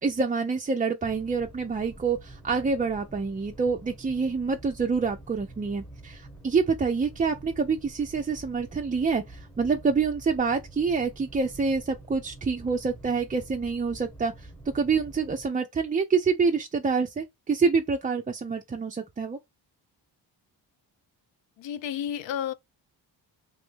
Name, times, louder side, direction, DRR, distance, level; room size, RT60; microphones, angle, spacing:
voice 1, 0.0-14.5 14.7-19.4, right 5 dB, 20° right, 0.3 m, -27 dB
sound 1, 1.0-15.5, right 2 dB, 5° left, 1.0 m, -47 dB
voice 2, 21.6-22.5, left 9 dB, 75° left, 0.5 m, -31 dB
3.0 x 2.1 x 3.1 m
cardioid pair, 70°, 45 cm